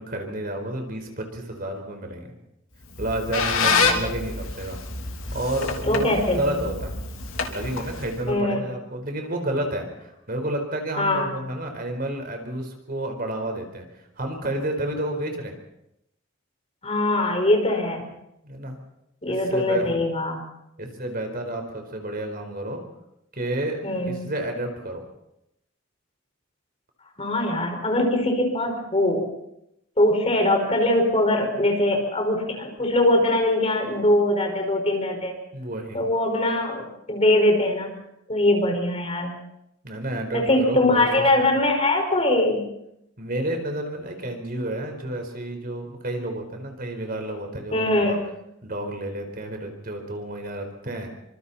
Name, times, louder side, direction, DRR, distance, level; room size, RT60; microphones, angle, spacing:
voice 1, 0.0-2.3 3.0-4.8 5.3-7.0 7.5-9.9 10.3-13.9 14.2-15.5 18.4-18.8 19.3-19.9 20.8-22.8 23.3-25.0 35.5-36.0 39.8-41.1 43.2-48.2 48.6-51.1, right 1 dB, 45° right, 4 dB, 4.6 m, -30 dB
Squeak, 2.8-8.3, left 4 dB, 90° left, 3.2 m, -27 dB
voice 2, 3.6-4.0 5.9-6.7 8.3-8.6 11.0-11.3 16.8-18.0 19.2-20.4 23.8-24.2 27.2-29.3 30.0-35.4 35.9-37.9 38.3-39.3 40.3-42.7 47.7-48.2, left 1 dB, 30° left, 2 dB, 5.3 m, -22 dB
28.5 x 26.0 x 4.4 m, 0.82 s
head